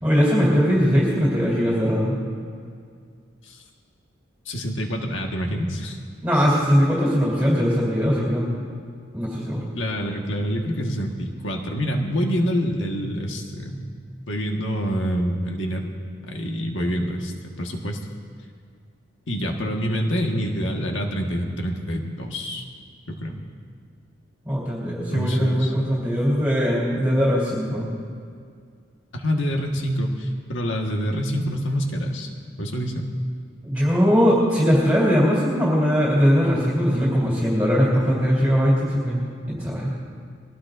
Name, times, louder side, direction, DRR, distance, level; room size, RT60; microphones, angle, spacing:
voice 1, 0.0-2.2 6.2-8.5 9.1-9.6 24.4-27.9 33.6-39.9, equal, 10° right, -7 dB, 3.3 m, -20 dB
voice 2, 4.4-6.0 9.8-13.9 14.3-15.9 16.3-18.0 19.3-22.6 23.1-23.4 25.1-25.7 29.1-32.3 32.6-33.1, equal, 80° left, 2 dB, 1.5 m, -26 dB
21.5 x 19.0 x 2.6 m, 2.1 s
head